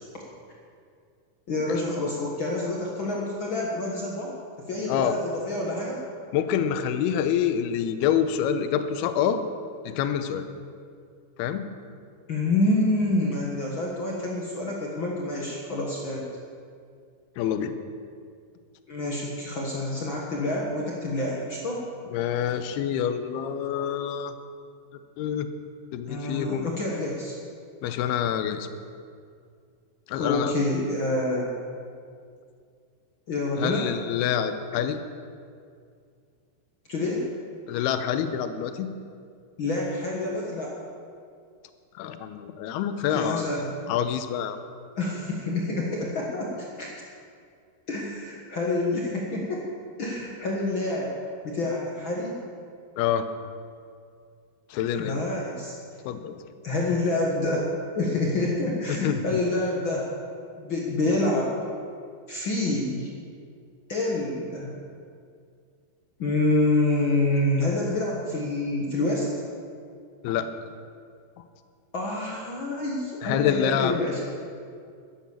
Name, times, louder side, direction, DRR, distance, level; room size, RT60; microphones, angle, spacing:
voice 1, 1.5-6.0 12.3-16.2 18.9-21.8 26.1-27.3 30.2-31.5 33.3-33.9 36.9-37.2 39.6-40.7 43.1-43.7 45.0-46.9 47.9-49.6 50.0-51.1 51.4-52.4 55.0-55.7 56.6-57.7 57.9-60.1 60.6-61.5 62.3-63.1 63.9-64.7 66.2-69.3 71.9-74.2, left 2 dB, 70° left, -2 dB, 1.2 m, -27 dB
voice 2, 6.3-9.4 9.8-10.5 11.4-11.7 17.4-17.7 22.1-24.3 25.2-25.5 25.9-26.7 27.8-28.7 30.1-30.6 33.6-35.0 37.7-38.9 42.0-43.5 43.9-44.6 53.0-53.3 54.7-55.2 56.1-56.4 58.9-59.4 70.2-70.5 73.2-73.9, left 9 dB, 85° left, 10 dB, 2.7 m, -26 dB
13.0 x 10.5 x 7.2 m, 2.3 s
omnidirectional pair, 4.6 m